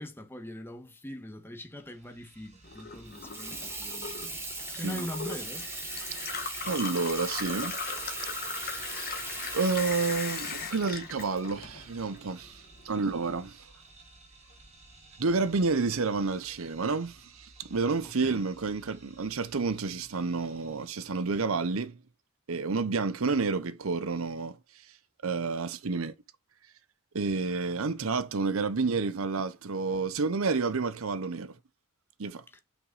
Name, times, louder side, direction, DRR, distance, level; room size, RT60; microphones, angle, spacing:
voice 1, 0.0-4.2 4.7-5.7 18.2-18.5 32.5-32.6, equal, 10° left, 1.4 m, -42 dB
sound 1, 1.7-21.4, right 2 dB, 30° right, 2.7 m, -55 dB
Gurgling / Water tap faucet / Sink (filling or washing), 2.6-12.2 12.5-13.4, left 5 dB, 45° left, 1.5 m, -39 dB
Water tap faucet / Sink (filling or washing), 3.1-12.6, right 2 dB, 10° right, 1.8 m, -39 dB
voice 2, 6.6-7.8 9.5-13.7 15.2-22.0 22.5-24.6 25.2-26.1 27.1-31.5 32.2-32.4, right 4 dB, 65° right, 0.7 m, -30 dB
5.9 x 5.0 x 4.0 m
head